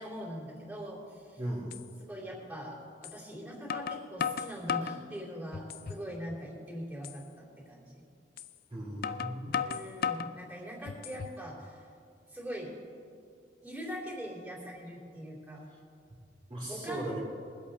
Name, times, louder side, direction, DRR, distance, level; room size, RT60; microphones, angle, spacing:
voice 1, 0.0-1.4 2.0-8.0 9.6-11.9 12.3-12.7 13.6-15.7 16.7-17.2, equal, 10° right, -6 dB, 3.3 m, -42 dB
sound 1, 1.1-1.2 1.7-1.8 3.0-3.2 3.7-5.0 5.5-6.1 6.5-6.6 7.0-7.2 8.4-8.5 9.0-10.3 10.9-11.4, left 7 dB, 55° left, 0.4 m, -35 dB
voice 2, 1.4-1.8 8.7-9.5 16.5-17.2, right 1 dB, 25° right, -6 dB, 2.8 m, -37 dB
22.0 x 8.2 x 4.2 m, 2.3 s
head